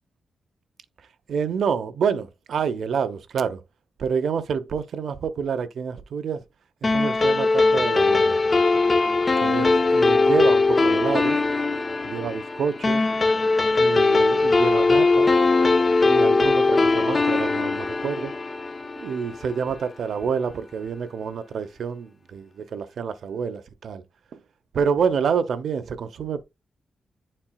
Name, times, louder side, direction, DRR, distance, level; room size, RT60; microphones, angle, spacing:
voice 1, 1.3-3.6 4.0-6.4 6.8-8.4 9.4-11.4 12.0-13.0 13.8-15.4 16.0-18.3 19.0-24.0 24.3-24.4 24.7-26.4, right 6 dB, 75° right, 0.7 m, -28 dB
sound 1, 6.8-19.6, left 3 dB, 25° left, 0.4 m, -20 dB
9.7 x 4.3 x 2.2 m
wide cardioid pair, 145°, 0 cm